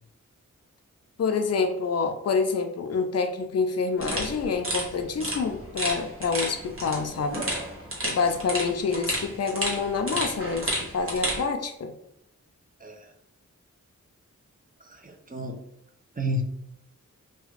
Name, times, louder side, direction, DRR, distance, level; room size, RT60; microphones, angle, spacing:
voice 1, 1.2-7.4 8.0-11.9, left 5 dB, 50° left, 6 dB, 0.4 m, -27 dB
sound 1, 4.0-11.4, right 1 dB, 45° right, 0.9 m, -32 dB
voice 2, 12.8-13.1 14.8-15.6 16.2-16.4, equal, 25° right, 2 dB, 0.5 m, -31 dB
2.4 x 2.3 x 3.1 m, 0.78 s
wide cardioid pair, 55°, 32 cm